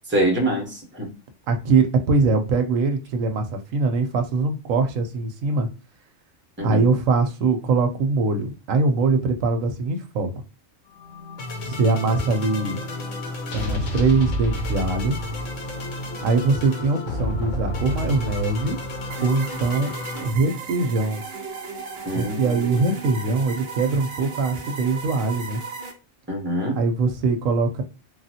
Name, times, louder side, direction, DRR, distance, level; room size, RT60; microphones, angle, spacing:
voice 1, 0.1-1.1 6.6-6.8 22.0-22.8 26.3-26.8, right 1 dB, 10° right, 0.8 m, -25 dB
voice 2, 1.5-5.7 6.6-10.4 11.6-12.8 13.5-15.2 16.2-18.8 19.2-19.9 20.2-21.2 22.1-25.6 26.8-27.8, right 3 dB, 85° right, 1.0 m, -22 dB
sound 1, 11.0-20.3, left 1 dB, 75° left, 1.2 m, -30 dB
sound 2, 19.1-25.9, right 5 dB, 50° right, 0.7 m, -36 dB
3.2 x 2.4 x 2.7 m
omnidirectional pair, 1.3 m